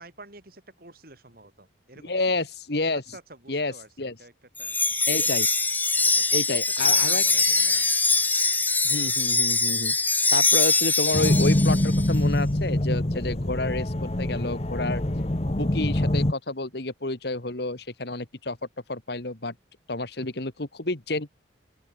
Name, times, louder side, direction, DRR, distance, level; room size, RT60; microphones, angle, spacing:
voice 1, 0.0-2.4 2.9-4.3 4.6-5.0 5.4-5.5 6.0-7.9, right 2 dB, 50° right, 5.5 m, -48 dB
voice 2, 2.0-3.2 3.5-4.2 5.1-5.5 6.3-7.2 8.8-10.0 10.3-15.0 15.5-18.6 18.9-19.5 19.9-21.3, left 2 dB, 60° left, 1.9 m, -29 dB
Wind chime, 4.6-12.1, left 3 dB, 10° left, 1.5 m, -23 dB
sound 1, 11.1-16.3, left 1 dB, 35° left, 1.1 m, -24 dB
open air
head